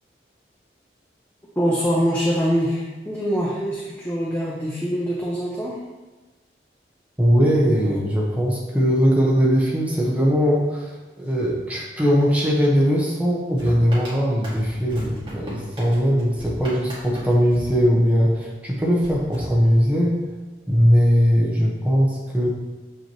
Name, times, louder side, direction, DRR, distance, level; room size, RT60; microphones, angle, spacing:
voice 1, 1.6-5.8, equal, 10° left, -4 dB, 0.7 m, -24 dB
voice 2, 7.2-20.2 20.7-22.5, equal, 10° right, -4 dB, 1.0 m, -20 dB
sound 1, 13.6-18.4 19.0-20.2, equal, 25° right, 1.9 m, -38 dB
7.1 x 5.6 x 3.0 m, 1.2 s
head